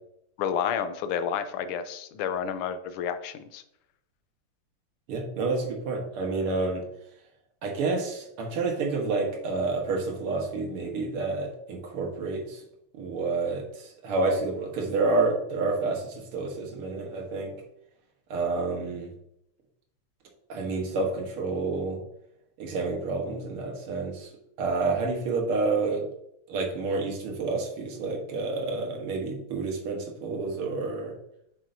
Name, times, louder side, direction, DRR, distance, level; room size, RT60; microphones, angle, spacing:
voice 1, 0.4-3.6, left 8 dB, 85° left, 10 dB, 1.6 m, -30 dB
voice 2, 5.1-6.8 7.6-12.6 12.9-17.5 18.3-19.1 20.5-22.0 22.6-24.3 24.6-26.1 26.5-31.1, right 3 dB, 80° right, 1 dB, 2.1 m, -29 dB
7.4 x 5.6 x 2.7 m, 0.77 s
omnidirectional pair, 2.4 m